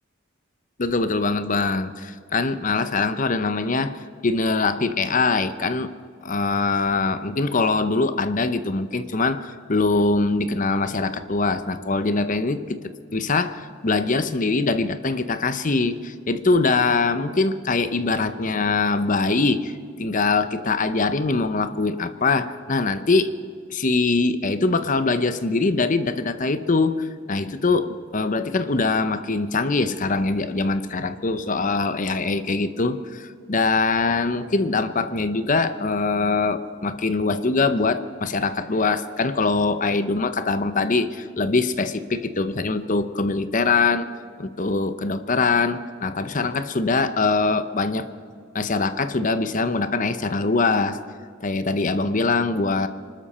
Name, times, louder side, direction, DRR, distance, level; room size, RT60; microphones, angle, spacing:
voice 1, 0.8-5.9 6.2-12.8 13.1-19.7 20.0-23.3 23.7-44.1 44.4-48.0 48.5-51.0 51.4-52.9, left 3 dB, 40° left, 11 dB, 0.8 m, -23 dB
25.0 x 13.0 x 4.3 m, 2.2 s
head